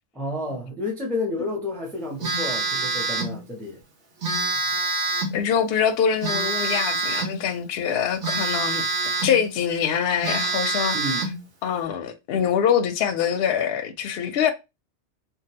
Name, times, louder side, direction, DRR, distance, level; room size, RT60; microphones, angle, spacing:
voice 1, 0.1-3.8 10.9-11.3, left 2 dB, ahead, 0.6 m, -30 dB
Telephone, 2.2-3.4 4.2-5.4 6.2-7.4 8.2-9.4 9.8-9.9 10.2-11.4, right 3 dB, 80° right, 1.4 m, -26 dB
voice 2, 5.3-8.8 9.2-11.0 11.6-14.5, left 8 dB, 65° left, 0.7 m, -24 dB
3.0 x 2.4 x 2.8 m
omnidirectional pair, 1.2 m